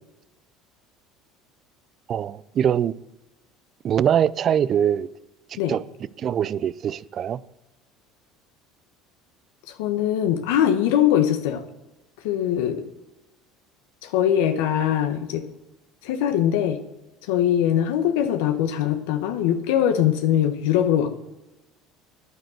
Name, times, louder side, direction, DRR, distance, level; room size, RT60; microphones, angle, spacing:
voice 1, 2.1-2.9 3.8-5.1 5.5-5.8 6.2-7.4, right 9 dB, 45° right, 0.5 m, -23 dB
voice 2, 9.7-11.6 12.2-12.8 14.0-15.5 16.0-16.8 17.2-21.1, left 10 dB, 85° left, 1.0 m, -22 dB
9.4 x 9.2 x 6.5 m
supercardioid pair, 110°, 0 cm